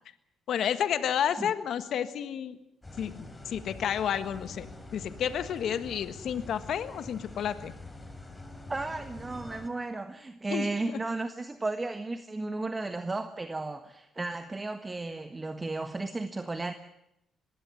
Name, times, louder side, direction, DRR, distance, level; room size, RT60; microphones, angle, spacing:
voice 1, 0.5-2.6 3.0-4.7 4.9-7.7 10.5-11.0, left 9 dB, 70° left, 11 dB, 1.5 m, -31 dB
sound 1, 2.8-9.7, left 2 dB, 20° left, 3.6 m, -45 dB
voice 2, 8.7-16.7, right 2 dB, 20° right, 8 dB, 1.4 m, -34 dB
21.5 x 16.0 x 9.5 m, 0.81 s
cardioid pair, 90°, 0 cm